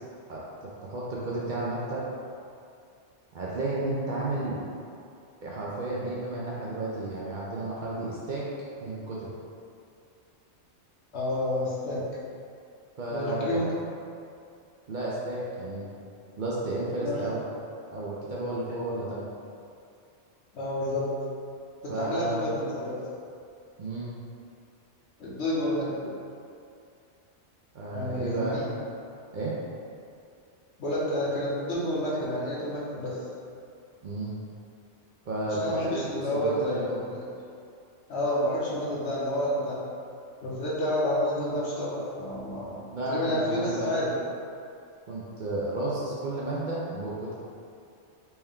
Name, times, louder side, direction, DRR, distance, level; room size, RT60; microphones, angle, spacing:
voice 1, 0.3-2.0 3.3-4.6 5.4-8.4 8.8-9.3 13.0-13.6 14.9-15.9 16.4-17.4 17.9-19.3 21.9-22.6 23.8-24.1 27.7-28.6 29.3-29.5 34.0-34.3 35.3-37.0 42.9-44.0 45.0-47.3, right 2 dB, 55° right, -7 dB, 0.6 m, -32 dB
voice 2, 11.1-12.0 13.1-13.7 17.0-17.2 20.5-21.1 21.8-23.0 25.2-26.0 27.9-28.7 30.8-33.2 35.5-37.2 38.1-39.8 40.4-42.8 43.1-44.2, left 1 dB, 70° left, -6 dB, 1.1 m, -29 dB
4.3 x 2.2 x 3.5 m, 2.5 s
omnidirectional pair, 1.2 m